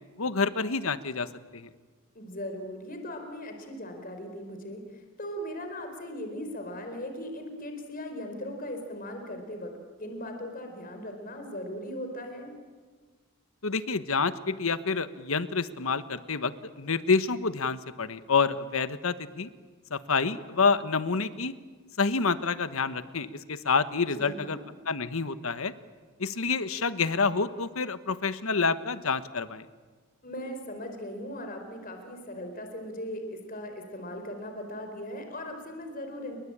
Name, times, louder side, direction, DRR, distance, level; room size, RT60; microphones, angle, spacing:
voice 1, 0.2-1.7 13.6-19.5 19.9-21.5 22.0-24.6 24.9-25.7 26.2-29.7, left 4 dB, 75° left, 12 dB, 1.3 m, -28 dB
voice 2, 2.1-9.7 10.0-12.5 24.1-24.6 30.2-36.4, equal, 40° left, 5 dB, 4.4 m, -38 dB
30.0 x 22.5 x 8.8 m, 1.5 s
head